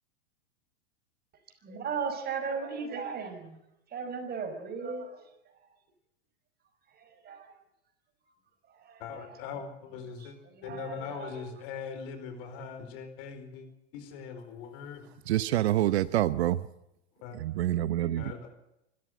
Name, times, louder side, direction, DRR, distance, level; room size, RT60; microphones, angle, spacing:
voice 1, 1.6-3.6 3.9-5.3 6.9-7.6 8.7-9.0 10.5-11.4, right 5 dB, 30° right, 6 dB, 5.4 m, -36 dB
voice 2, 9.0-10.4 10.6-13.7 13.9-15.0 17.2-17.4 18.2-18.5, left 6 dB, 55° left, 8 dB, 4.7 m, -41 dB
voice 3, 15.3-16.7 17.3-18.3, right 13 dB, 70° right, 16 dB, 0.9 m, -27 dB
26.0 x 14.0 x 8.0 m, 0.87 s
hypercardioid pair, 110°, 34 cm